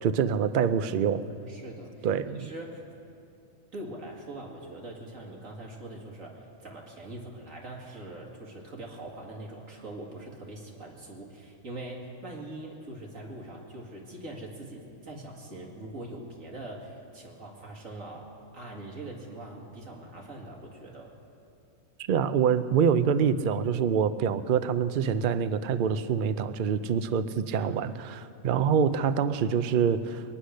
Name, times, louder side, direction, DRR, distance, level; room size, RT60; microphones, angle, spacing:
voice 1, 0.0-1.2 2.0-2.5 22.1-30.2, right 7 dB, 55° right, 12 dB, 0.6 m, -25 dB
voice 2, 1.5-2.1 2.3-2.8 3.7-21.2 27.6-27.8, right 1 dB, 85° right, -1 dB, 2.5 m, -42 dB
22.5 x 10.0 x 6.4 m, 2.6 s
omnidirectional pair, 1.4 m